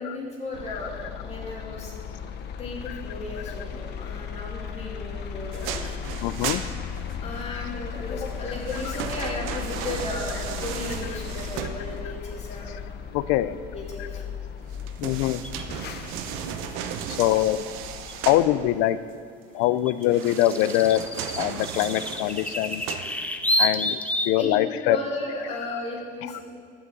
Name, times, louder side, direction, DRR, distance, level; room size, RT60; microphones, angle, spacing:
voice 1, 0.0-2.2 2.6-6.0 7.2-12.7 13.7-14.3 24.4-26.4, left 2 dB, 30° left, -1 dB, 2.2 m, -35 dB
sound 1, 0.5-18.7, left 7 dB, 55° left, 0.9 m, -36 dB
sound 2, 5.5-7.4 8.3-12.2 14.7-18.5 20.0-23.5 24.0-24.1, right 8 dB, 75° right, 0.8 m, -35 dB
voice 2, 6.2-6.6 7.5-7.6 8.8-8.9 13.1-13.6 14.0-14.1 15.0-15.4 17.2-17.6 18.3-19.0 19.5-21.0 21.4-22.8 23.6-24.0 24.2-25.0 25.7-25.8 26.3-26.4, left 14 dB, 90° left, 15 dB, 0.5 m, -23 dB
sound 3, 15.4-15.6 18.1-18.2 19.9-24.4, equal, 5° left, 0.5 m, -28 dB
11.0 x 5.7 x 7.6 m, 2.3 s
cardioid pair, 140°, 21 cm